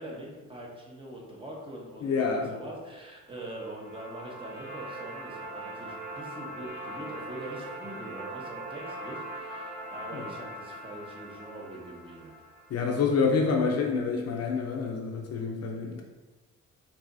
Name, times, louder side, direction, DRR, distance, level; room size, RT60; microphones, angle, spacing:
voice 1, 0.0-12.3, right 1 dB, 15° right, -2 dB, 1.1 m, -43 dB
voice 2, 2.0-2.5 10.1-10.2 12.7-16.0, left 5 dB, 55° left, 1 dB, 0.7 m, -27 dB
sound 1, 3.3-13.3, right 1 dB, 35° right, 1.2 m, -41 dB
4.7 x 2.9 x 2.6 m, 1.2 s
cardioid pair, 90°, 30 cm